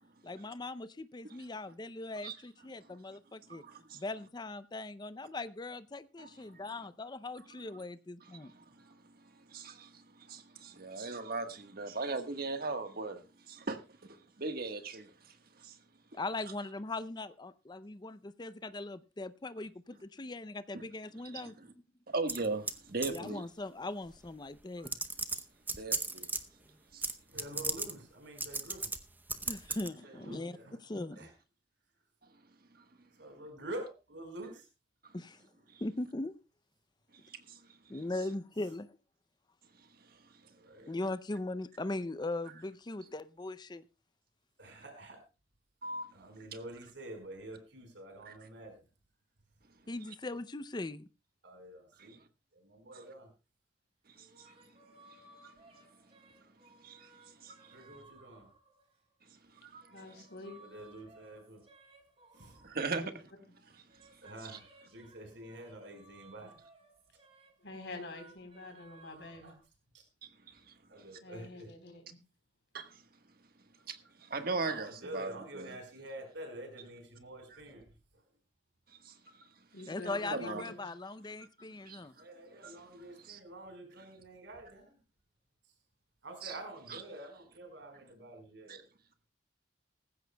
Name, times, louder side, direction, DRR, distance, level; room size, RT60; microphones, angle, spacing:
voice 1, 0.2-3.6 3.9-8.5 16.1-21.6 23.1-24.9 29.5-30.6 30.8-31.2 35.1-35.4 35.8-36.3 37.9-39.0 40.9-43.8 49.9-51.0 79.9-82.1, left 2 dB, 25° left, 0.5 m, -40 dB
voice 2, 3.5-4.0 6.2-6.6 8.2-15.8 21.3-21.7 22.1-23.4 24.8-24.9 25.7-26.3 26.9-27.0 29.7-29.8 32.7-32.8 35.0-35.1 35.7-35.8 37.2-37.6 37.9-38.0 39.8-40.2 45.8-46.1 48.3-48.4 52.1-52.2 54.1-54.6 55.1-55.5 56.8-57.1 57.4-57.7 59.5-60.2 62.6-63.0 70.5-70.7 72.7-73.0 73.9-75.7 79.0-79.5 80.0-80.6 81.8-82.0 82.6-82.7 83.3-83.4 86.4-86.5 86.9-87.0 88.7-88.8, right 3 dB, 55° right, 1.4 m, -40 dB
sound 1, 22.3-22.8 23.0-23.3 24.3-24.4 24.8-26.4 27.0-27.1 27.4-27.9 28.4-29.0 29.3-29.9, right 3 dB, 10° right, 0.7 m, -35 dB
voice 3, 27.3-28.9 29.8-30.8 31.2-31.3 33.2-34.7 40.4-40.9 44.6-45.2 46.1-48.9 51.4-52.2 52.5-53.3 57.7-58.5 60.6-61.6 62.3-62.7 64.2-66.6 69.2-69.5 69.9-70.0 70.9-71.7 74.4-78.2 82.2-85.0 86.2-88.9, right 1 dB, 85° right, 4.7 m, -47 dB
sound 2, 54.2-59.1 59.6-63.3 63.7-69.6, right 2 dB, 35° right, 3.6 m, -61 dB
voice 4, 59.9-60.6 62.9-63.1 67.6-69.5 71.2-72.2 79.7-80.6, left 2 dB, 70° left, 3.9 m, -46 dB
18.5 x 15.5 x 2.3 m
head